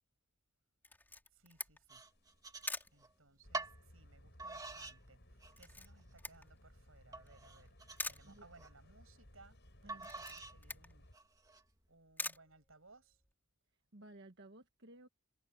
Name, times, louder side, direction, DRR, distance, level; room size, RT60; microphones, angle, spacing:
Camera, 0.8-13.3, left 2 dB, 10° left, 2.9 m, -49 dB
voice 1, 1.3-2.0 2.9-7.8 8.1-11.1 11.9-13.2, right 3 dB, 85° right, 7.0 m, -64 dB
sound 1, 1.9-3.1 3.5-3.8 4.4-5.0 5.4-5.9 6.4-6.5 7.1-8.7 9.9-10.6 11.1-11.6, right 3 dB, 20° right, 1.9 m, -46 dB
sound 2, 2.2-2.6 3.0-3.1 3.4-11.2, equal, 60° left, 6.9 m, -61 dB
voice 2, 13.9-15.1, right 1 dB, 60° right, 1.5 m, -56 dB
head